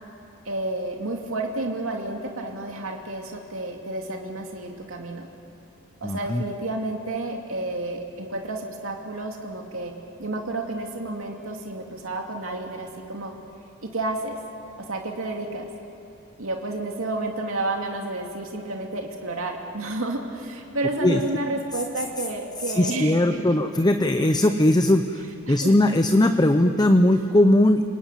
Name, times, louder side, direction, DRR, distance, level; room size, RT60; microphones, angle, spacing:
voice 1, 0.4-5.3 6.0-9.9 10.2-13.3 13.8-14.4 14.9-15.7 16.4-23.6 25.5-25.7, right 2 dB, 90° right, 1 dB, 2.5 m, -30 dB
voice 2, 6.0-6.4 21.0-21.2 22.8-27.8, left 1 dB, 20° left, 7 dB, 0.8 m, -19 dB
29.5 x 19.5 x 9.2 m, 2.7 s
head